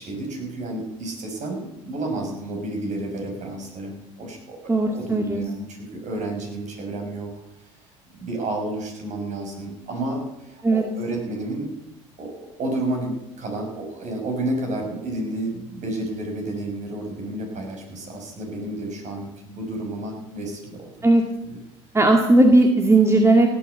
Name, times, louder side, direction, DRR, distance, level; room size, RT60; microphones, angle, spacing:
voice 1, 0.0-7.3 8.1-11.8 12.2-20.9 21.5-21.6, right 2 dB, 45° right, 2 dB, 5.8 m, -31 dB
voice 2, 4.7-5.4 10.6-10.8 21.0-21.2 21.9-23.5, right 2 dB, 15° right, 3 dB, 2.1 m, -16 dB
16.5 x 8.8 x 8.2 m, 0.93 s
hypercardioid pair, 70°, 17 cm